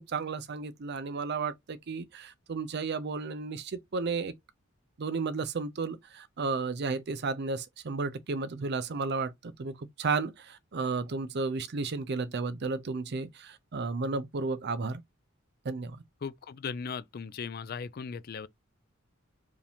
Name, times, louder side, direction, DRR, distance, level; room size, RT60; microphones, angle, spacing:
voice 1, 0.0-4.3 5.0-15.0 15.6-16.0, right 4 dB, 55° right, 0.5 m, -33 dB
voice 2, 16.2-18.5, left 5 dB, 50° left, 0.4 m, -37 dB
4.8 x 2.8 x 3.4 m
head